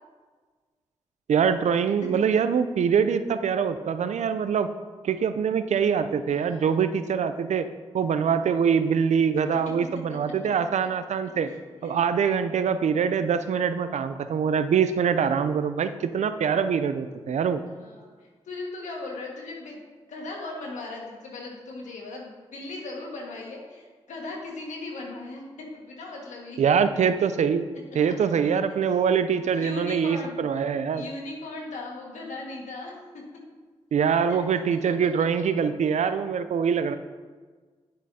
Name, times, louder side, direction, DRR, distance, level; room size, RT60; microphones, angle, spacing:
voice 1, 1.3-4.7 5.0-7.7 7.9-11.5 11.8-17.6 26.6-27.7 27.9-31.0 33.9-36.9, right 7 dB, 70° right, 11 dB, 0.5 m, -24 dB
voice 2, 6.2-6.8 10.1-10.2 10.8-10.9 11.4-11.9 17.7-19.8 20.1-26.6 28.9-29.0 29.5-30.4 30.9-32.9 34.3-34.4, left 2 dB, 80° left, -1 dB, 1.7 m, -38 dB
9.7 x 8.1 x 2.8 m, 1.4 s
supercardioid pair, 40°, 12 cm